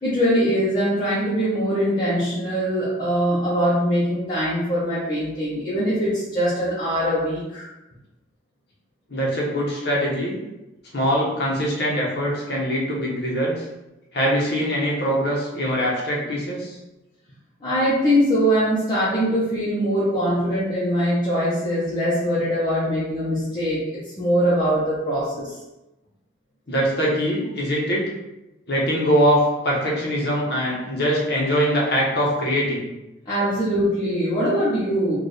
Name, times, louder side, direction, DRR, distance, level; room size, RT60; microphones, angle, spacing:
voice 1, 0.0-7.6 17.6-23.8 24.2-25.6 33.3-35.2, equal, 20° left, -12 dB, 0.9 m, -22 dB
voice 2, 9.1-10.4 10.9-13.6 14.1-16.7 26.7-28.0 28.7-32.9, equal, 55° left, -3 dB, 1.1 m, -22 dB
4.4 x 2.6 x 3.3 m, 0.96 s
head